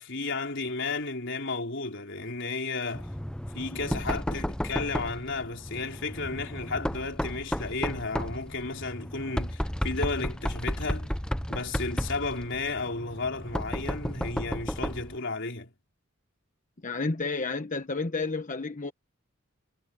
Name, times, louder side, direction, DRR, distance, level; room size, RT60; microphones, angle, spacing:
voice 1, 0.0-3.1 3.5-11.2 11.5-15.7, left 3 dB, 55° left, 4.2 m, -33 dB
Knock, 2.9-15.2, equal, 5° left, 0.7 m, -33 dB
voice 2, 16.8-18.9, left 3 dB, 35° left, 1.1 m, -31 dB
head